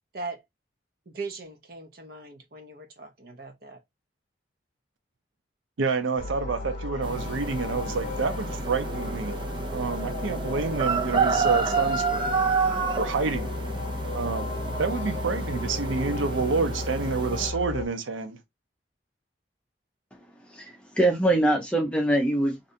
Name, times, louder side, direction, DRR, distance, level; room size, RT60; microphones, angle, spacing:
voice 1, 1.1-3.8, right 3 dB, 50° right, 0.8 m, -39 dB
voice 2, 5.8-9.3 9.7-12.2 13.0-13.5 14.1-14.5 14.8-18.4, right 4 dB, 85° right, 0.6 m, -28 dB
sound 1, 6.2-17.9, left 2 dB, 40° left, 0.7 m, -34 dB
sound 2, 7.0-17.5, right 5 dB, 25° right, 0.4 m, -30 dB
voice 3, 20.5-22.6, right 1 dB, 5° left, 0.7 m, -23 dB
3.2 x 2.6 x 2.6 m
head